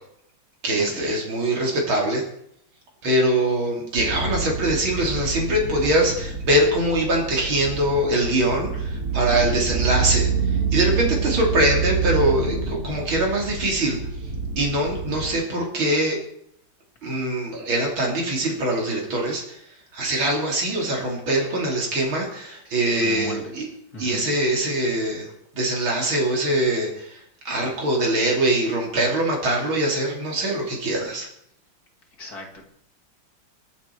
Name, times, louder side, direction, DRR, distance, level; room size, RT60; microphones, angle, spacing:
voice 1, 0.6-2.2 3.0-14.0 14.6-16.2 17.0-19.6 19.9-23.7 24.0-25.3 25.5-31.3, right 1 dB, 90° right, -1 dB, 3.9 m, -23 dB
sound 1, 4.0-15.3, right 5 dB, 45° right, 2.9 m, -27 dB
voice 2, 23.0-23.5 23.9-24.3 32.2-32.6, left 3 dB, 50° left, 1 dB, 2.9 m, -36 dB
23.5 x 8.5 x 4.6 m, 0.72 s
omnidirectional pair, 2.2 m